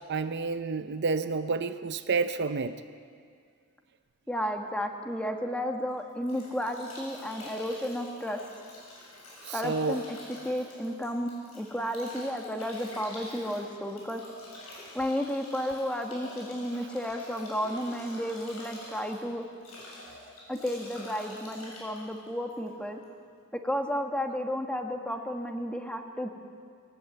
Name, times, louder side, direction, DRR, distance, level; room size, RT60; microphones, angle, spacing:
voice 1, 0.1-2.8 9.4-10.0, right 4 dB, 50° right, 10 dB, 0.6 m, -29 dB
voice 2, 4.3-8.4 9.5-10.2 10.4-14.2 14.9-19.4 20.5-23.0 23.5-26.3, equal, 5° left, 4 dB, 1.4 m, -32 dB
Bathtub (filling or washing) / Drip / Trickle dribble, 5.8-23.0, left 1 dB, 80° left, 7.6 m, -47 dB
19.5 x 18.5 x 8.0 m, 2.2 s
head